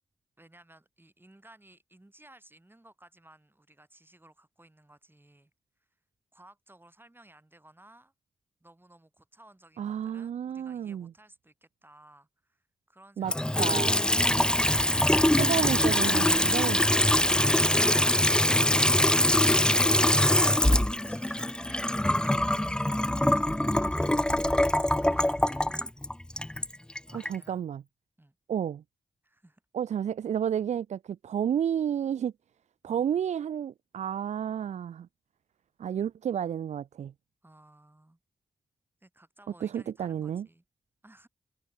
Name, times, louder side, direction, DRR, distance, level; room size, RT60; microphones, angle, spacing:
voice 1, 0.4-5.5 6.3-8.1 8.6-14.8 16.9-17.5 19.9-23.3 23.7-25.9 27.1-27.6 28.2-28.4 29.2-29.6 32.9-33.0 37.4-38.2 39.0-40.6 41.0-41.3, right 1 dB, 20° right, 7.8 m, -57 dB
voice 2, 9.8-11.1 13.2-13.3 13.6-14.0 15.3-16.8 27.1-27.8 28.5-28.8 29.7-32.3 32.8-35.1 35.8-37.1 39.6-40.5, right 9 dB, 85° right, 0.8 m, -31 dB
Water tap faucet / Sink (filling or washing) / Trickle dribble, 13.2-27.4, left 1 dB, 5° left, 0.5 m, -23 dB
open air
cardioid pair, 45°, 12 cm